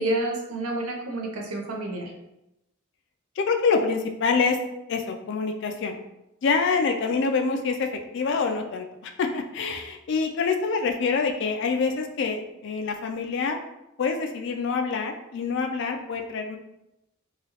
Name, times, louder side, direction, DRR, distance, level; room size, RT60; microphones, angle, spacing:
voice 1, 0.0-2.1, right 1 dB, 85° right, 0 dB, 0.6 m, -29 dB
voice 2, 3.4-4.6 4.9-6.0 6.4-7.9 8.1-13.6 14.0-16.6, left 4 dB, 55° left, 5 dB, 0.3 m, -26 dB
3.0 x 2.3 x 2.8 m, 0.89 s
head